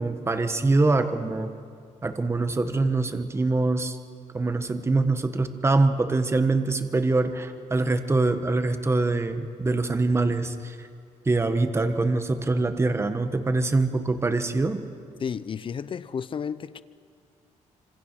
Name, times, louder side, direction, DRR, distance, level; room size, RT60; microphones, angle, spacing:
voice 1, 0.0-1.5 2.0-4.0 4.3-10.9 11.3-14.8, right 3 dB, 20° right, 1.4 m, -24 dB
voice 2, 15.2-16.8, left 7 dB, 40° left, 0.8 m, -32 dB
26.5 x 26.0 x 6.0 m
cardioid pair, 105°, 13 cm